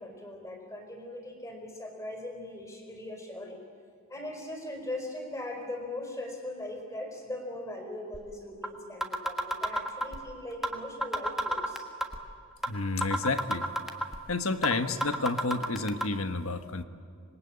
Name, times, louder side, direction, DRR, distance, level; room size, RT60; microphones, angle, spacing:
voice 1, 0.0-3.6 4.1-11.9, left 1 dB, 15° left, 3 dB, 4.5 m, -40 dB
sound 1, 8.1-8.2 8.6-8.7 9.0-10.2 10.6-10.8 11.0-12.2 12.6-12.7 13.0-14.2 14.6-14.7 15.0-16.0, equal, ahead, 1.5 m, -29 dB
voice 2, 12.7-13.7 14.3-16.8, left 3 dB, 80° left, 9 dB, 1.3 m, -30 dB
26.5 x 22.0 x 8.8 m, 2.3 s
head